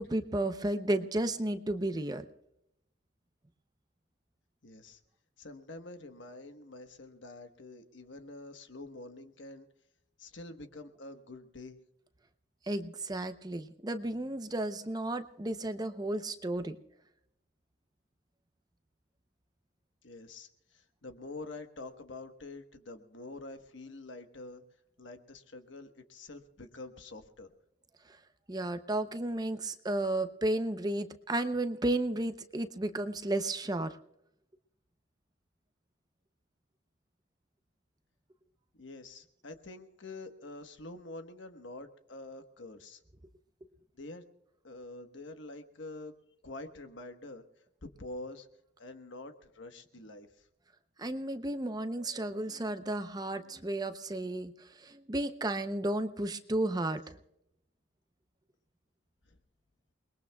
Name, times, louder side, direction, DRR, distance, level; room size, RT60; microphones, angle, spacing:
voice 1, 0.0-2.2 12.7-16.8 28.1-28.2 28.5-34.0 51.0-57.2, right 1 dB, 20° right, 9 dB, 0.6 m, -33 dB
voice 2, 4.6-5.0 5.4-9.7 10.2-11.8 20.0-24.6 25.0-27.5 38.8-43.0 44.0-44.2 44.6-46.1 46.4-47.4 47.8-48.5 48.8-50.5 59.3-59.4, left 2 dB, 70° left, 7 dB, 1.2 m, -46 dB
29.0 x 21.0 x 2.3 m, 0.80 s
head